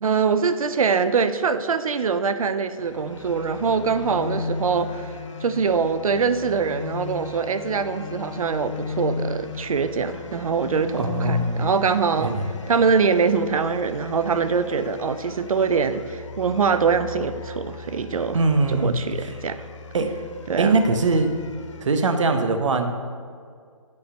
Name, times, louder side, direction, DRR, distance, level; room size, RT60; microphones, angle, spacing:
voice 1, 0.0-5.1 5.4-12.3 12.7-18.4 18.7-19.6 20.5-20.8, right 5 dB, 90° right, 11 dB, 0.5 m, -23 dB
sound 1, 2.8-21.8, left 5 dB, 60° left, 0.6 m, -37 dB
voice 2, 11.0-11.7 12.2-12.5 18.3-19.0 19.9-20.1 20.6-21.3 21.8-23.0, right 3 dB, 60° right, 7 dB, 0.8 m, -21 dB
8.5 x 3.3 x 6.1 m, 2.1 s
hypercardioid pair, 170°, 18 cm